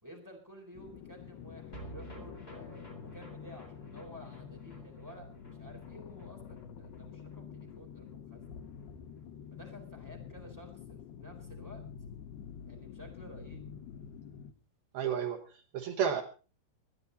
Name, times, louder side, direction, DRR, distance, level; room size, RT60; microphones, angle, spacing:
voice 1, 0.0-8.5 9.5-11.8 12.7-13.6, equal, 5° right, 0 dB, 3.7 m, -52 dB
sound 1, 0.7-14.5, left 7 dB, 75° left, 2.5 m, -48 dB
sound 2, 1.7-8.2 8.4-8.5 8.8-8.9, right 1 dB, 15° left, 2.9 m, -52 dB
voice 2, 14.9-16.2, right 8 dB, 65° right, 2 dB, 2.6 m, -32 dB
24.0 x 10.0 x 4.1 m, 0.35 s
omnidirectional pair, 5.4 m